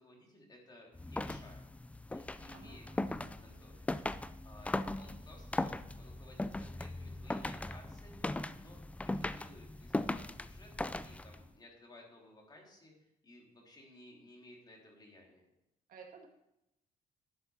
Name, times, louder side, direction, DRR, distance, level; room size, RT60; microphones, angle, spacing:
voice 1, 0.0-1.6 2.1-3.9 4.4-8.3 8.6-15.4, left 1 dB, 25° left, -1 dB, 3.2 m, -58 dB
sound 1, 0.9-11.5, left 2 dB, 10° left, 0.4 m, -39 dB
voice 2, 2.5-3.0 3.3-3.6 15.9-16.3, right 6 dB, 70° right, 1 dB, 2.0 m, -55 dB
11.5 x 7.0 x 5.5 m, 0.86 s
cardioid pair, 110°, 15 cm